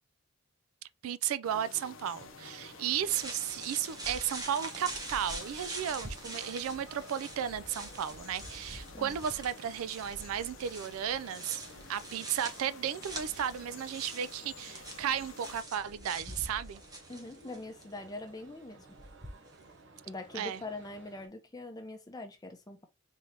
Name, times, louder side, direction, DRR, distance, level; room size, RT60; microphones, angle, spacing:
voice 1, 1.0-11.6 11.9-16.8 20.3-20.6, right 9 dB, 75° right, 0.3 m, -34 dB
sound 1, 1.4-15.6, left 5 dB, 60° left, 0.6 m, -51 dB
sound 2, 2.1-21.3, right 2 dB, 55° right, 0.8 m, -57 dB
sound 3, 3.1-17.9 19.0-19.7, right 1 dB, 15° right, 0.8 m, -45 dB
voice 2, 17.1-18.9 20.1-22.9, left 2 dB, 15° left, 0.7 m, -43 dB
3.8 x 3.2 x 2.7 m
head